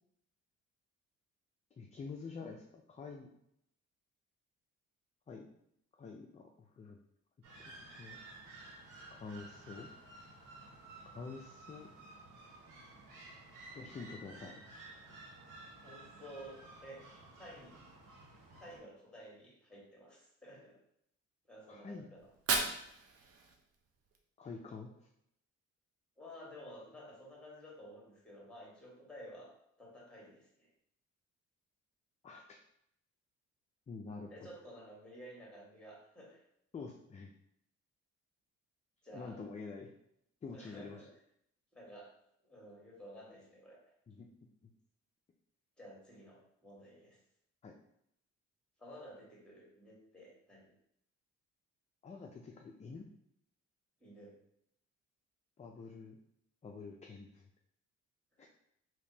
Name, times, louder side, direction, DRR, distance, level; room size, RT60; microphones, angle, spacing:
voice 1, 1.8-3.3 5.3-5.5 6.0-7.0 8.0-8.2 9.1-9.9 11.1-11.9 13.7-14.5 21.7-22.1 24.4-24.9 32.2-32.6 33.9-34.3 36.7-37.3 39.1-39.9 40.4-41.0 44.1-44.3 44.6-44.7 47.6-47.7 52.0-53.1 55.6-56.2 56.6-57.4 58.4-58.5, left 4 dB, 25° left, 1 dB, 0.4 m, -47 dB
sound 1, 7.4-18.8, right 2 dB, 75° right, 1.0 m, -54 dB
voice 2, 15.8-17.0 17.3-17.8 18.5-20.8 21.5-22.3 26.2-29.5 29.8-30.7 34.3-36.4 39.0-39.4 40.5-41.1 41.7-42.1 42.4-43.8 45.8-47.2 48.8-50.7 54.0-54.3 58.4-58.5, equal, 5° left, -4 dB, 1.5 m, -53 dB
Fire, 22.2-24.2, right 4 dB, 50° right, 0.6 m, -37 dB
3.4 x 2.9 x 2.8 m, 0.74 s
cardioid pair, 90°, 30 cm